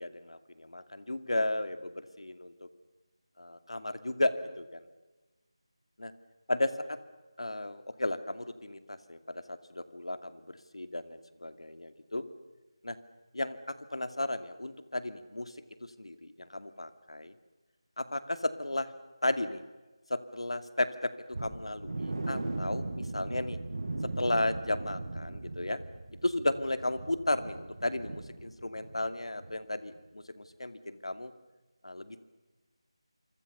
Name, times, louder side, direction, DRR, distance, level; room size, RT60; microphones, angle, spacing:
voice 1, 0.0-2.7 3.4-4.9 6.0-6.1 6.5-7.0 7.4-12.2 12.8-13.0 13.3-15.5 15.8-17.3 18.0-18.9 19.2-19.6 20.1-21.1 21.4-23.6 24.2-25.8 26.2-31.3 31.8-32.2, left 2 dB, 80° left, 10 dB, 2.5 m, -34 dB
sound 1, 21.3-29.1 29.4-29.5 30.0-30.1, right 2 dB, 55° right, 6.0 m, -38 dB
27.5 x 25.5 x 7.0 m, 1.2 s
figure-of-eight pair, 170°, 3 cm